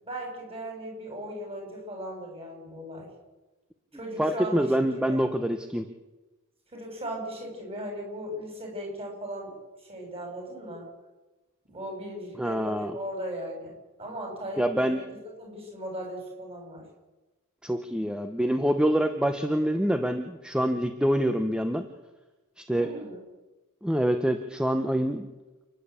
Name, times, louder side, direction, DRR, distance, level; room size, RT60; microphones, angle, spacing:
voice 1, 0.0-3.1 3.9-4.7 4.9-5.2 6.7-9.5 9.9-10.9 11.7-13.7 14.0-15.0 15.4-16.8 22.7-23.2, equal, 25° right, 1 dB, 7.6 m, -37 dB
voice 2, 4.2-5.9 12.4-13.0 14.6-15.0 17.6-21.9 22.6-22.9 23.8-25.3, equal, 5° right, 7 dB, 0.9 m, -26 dB
29.0 x 11.0 x 8.4 m, 1.1 s
head